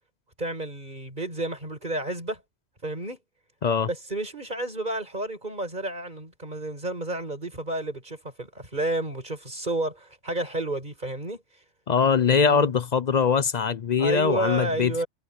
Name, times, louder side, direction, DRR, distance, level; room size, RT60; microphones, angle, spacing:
voice 1, 0.4-2.4 2.8-3.2 3.9-11.4 12.3-12.7 14.0-15.1, right 1 dB, 40° right, 6.0 m, -31 dB
voice 2, 11.9-15.0, left 6 dB, 45° left, 0.6 m, -22 dB
omnidirectional pair, 1.3 m